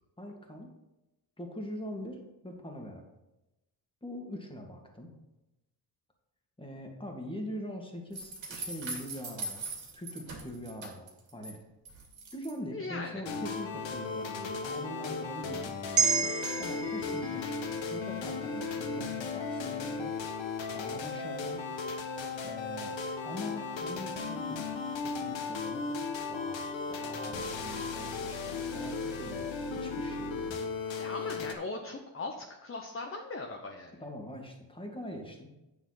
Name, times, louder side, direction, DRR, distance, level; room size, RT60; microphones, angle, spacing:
voice 1, 0.2-0.7 1.4-3.0 4.0-5.1 6.6-9.7 9.9-11.6 12.3-16.0 16.6-20.2 20.7-21.6 22.4-23.0 23.2-24.7 25.0-25.9 26.3-30.6 34.0-35.5, equal, 10° left, 1 dB, 2.0 m, -43 dB
sound 1, 8.1-11.5 11.8-12.5, right 3 dB, 65° right, 2.6 m, -41 dB
voice 2, 12.7-13.2 22.2-22.5 31.0-34.0, left 3 dB, 25° left, 2 dB, 1.0 m, -39 dB
sound 2, 13.2-31.5, left 4 dB, 65° left, 1.3 m, -36 dB
sound 3, 16.0-20.4 20.8-21.0, right 6 dB, 35° right, 0.7 m, -34 dB
9.3 x 6.9 x 4.1 m, 0.96 s
cardioid pair, 85°, 49 cm